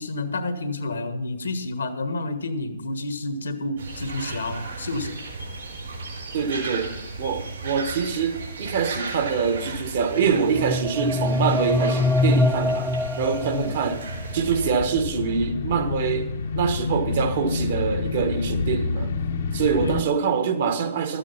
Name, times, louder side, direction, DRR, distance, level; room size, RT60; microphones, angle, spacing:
voice 1, 0.0-5.2 13.5-13.7 19.8-20.0, left 2 dB, 85° left, 1.5 m, -30 dB
sound 1, 3.8-14.8, right 3 dB, 80° right, 4.3 m, -35 dB
voice 2, 6.3-12.9 13.2-14.0 14.3-19.1 19.5-21.2, right 6 dB, 60° right, 1.4 m, -25 dB
sound 2, 10.2-14.2, left 2 dB, ahead, 0.5 m, -24 dB
sound 3, 13.8-20.0, left 4 dB, 65° left, 0.8 m, -28 dB
13.0 x 8.9 x 5.6 m
hypercardioid pair, 130°, 0 cm